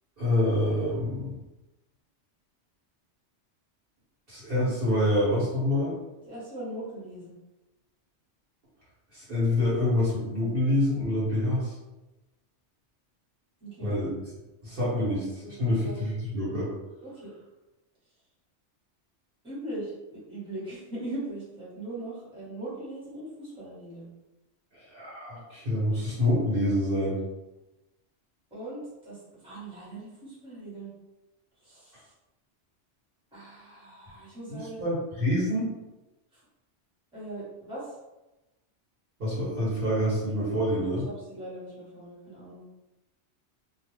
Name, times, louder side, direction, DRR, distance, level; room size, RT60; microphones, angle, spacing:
voice 1, 0.2-1.3 4.3-6.0 9.1-11.7 13.8-14.1 14.6-16.7 24.7-27.2 34.5-35.7 39.2-41.0, left 1 dB, 50° right, -8 dB, 1.2 m, -27 dB
voice 2, 6.3-7.4 13.6-14.0 15.4-16.0 17.0-17.3 19.4-24.1 28.5-30.9 31.6-32.1 33.3-34.8 36.3-36.4 37.1-38.0 40.7-42.7, right 1 dB, 5° right, -10 dB, 1.1 m, -40 dB
2.3 x 2.3 x 3.2 m, 1.0 s
omnidirectional pair, 1.2 m